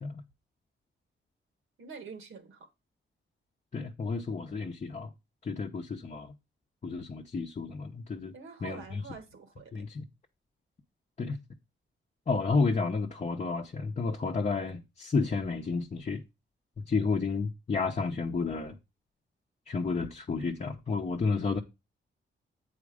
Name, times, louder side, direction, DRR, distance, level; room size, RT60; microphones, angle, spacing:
voice 1, 1.8-2.7 8.3-9.9, right 5 dB, 75° right, 1.6 m, -46 dB
voice 2, 3.7-5.1 5.4-6.3 6.8-8.3 8.6-9.0 9.7-10.0 11.2-11.4 12.3-16.2 16.8-18.7 19.7-21.6, left 4 dB, 35° left, 0.7 m, -31 dB
8.3 x 4.3 x 4.9 m
wide cardioid pair, 135°, 21 cm